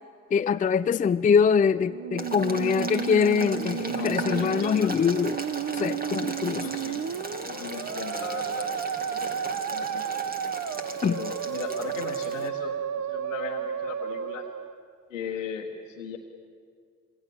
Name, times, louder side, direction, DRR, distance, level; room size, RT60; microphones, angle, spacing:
voice 1, 0.3-5.4 5.7-6.7 11.0-11.2, left 6 dB, 20° left, 13 dB, 0.5 m, -23 dB
Musical instrument, 1.8-14.8, right 8 dB, 45° right, 1.1 m, -32 dB
Boiling, 2.2-12.5, right 2 dB, 25° right, 2.6 m, -37 dB
voice 2, 3.9-4.9 6.6-7.0 7.5-8.7 9.1-9.4 9.7-10.2 11.1-12.8 13.1-14.5 15.1-16.2, left 7 dB, 85° left, -1 dB, 1.3 m, -37 dB
26.5 x 21.5 x 7.1 m, 2.2 s
figure-of-eight pair, 45°, 37 cm